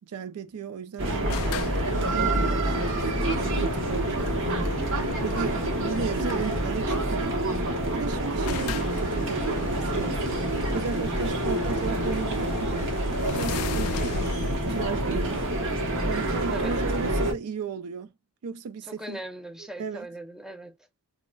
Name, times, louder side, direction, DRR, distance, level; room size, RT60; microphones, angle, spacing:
voice 1, 0.0-4.4 4.7-7.4 7.9-10.3 10.7-12.9 13.3-14.3 14.7-15.4 16.1-18.1 18.4-19.2 19.6-20.1, right 5 dB, 80° right, 0.4 m, -35 dB
sound 1, 1.0-17.3, right 1 dB, 60° right, 0.9 m, -27 dB
sound 2, 1.3-6.8 7.8-7.9 8.1-8.2 8.4-15.9, left 5 dB, 85° left, 0.4 m, -37 dB
voice 2, 18.8-20.7, right 1 dB, 5° right, 0.5 m, -39 dB
3.7 x 2.0 x 2.2 m
head